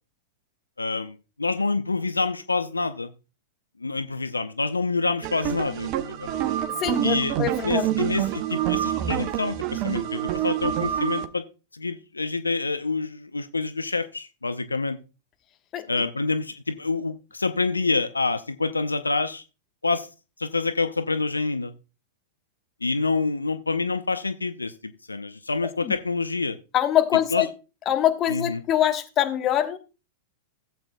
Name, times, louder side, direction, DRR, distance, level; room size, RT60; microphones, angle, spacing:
voice 1, 0.8-3.1 3.8-6.3 7.0-7.3 7.6-11.5 11.7-15.0 15.9-19.4 19.8-20.1 20.4-21.7 22.8-26.6 27.3-27.5 28.3-28.6, left 3 dB, 85° left, 0.5 m, -27 dB
sound 1, 5.2-11.3, right 12 dB, 45° right, 0.7 m, -27 dB
voice 2, 6.8-7.9 15.7-15.8 25.8-26.0 26.7-27.5 27.9-29.8, left 11 dB, 30° left, 1.1 m, -23 dB
16.5 x 7.8 x 2.2 m
figure-of-eight pair, 95°, 0 cm